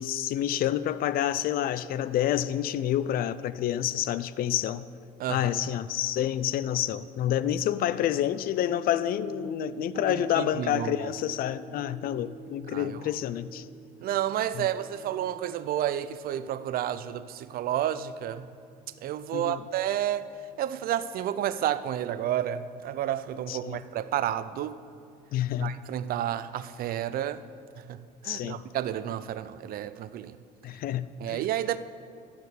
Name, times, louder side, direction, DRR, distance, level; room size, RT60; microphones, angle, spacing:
voice 1, 0.0-4.8 5.3-13.7 14.6-14.7 19.3-19.6 23.5-23.8 25.3-25.7 28.2-28.6 30.6-31.5, left 11 dB, 60° left, 0.4 m, -28 dB
sound 1, 8.6-28.0, right 5 dB, 35° right, 1.4 m, -49 dB
voice 2, 10.1-11.1 12.7-13.0 14.0-18.5 19.0-20.3 20.6-24.8 25.6-27.4 27.8-28.0 28.2-30.4 31.2-31.8, right 11 dB, 60° right, 0.4 m, -31 dB
12.0 x 4.8 x 6.6 m
cardioid pair, 110°, 17 cm